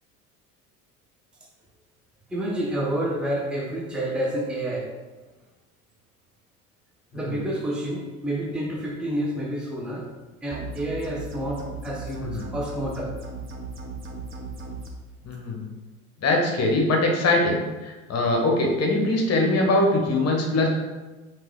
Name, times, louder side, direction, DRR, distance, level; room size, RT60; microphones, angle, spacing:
voice 1, 2.3-4.9 7.1-10.1 10.4-13.1, right 1 dB, ahead, -2 dB, 0.8 m, -29 dB
sound 1, 10.5-14.9, right 3 dB, 30° right, 0.9 m, -37 dB
voice 2, 15.3-15.6 16.2-20.7, left 2 dB, 35° left, 1 dB, 1.1 m, -22 dB
3.7 x 3.1 x 4.6 m, 1.2 s
hypercardioid pair, 75°, 43 cm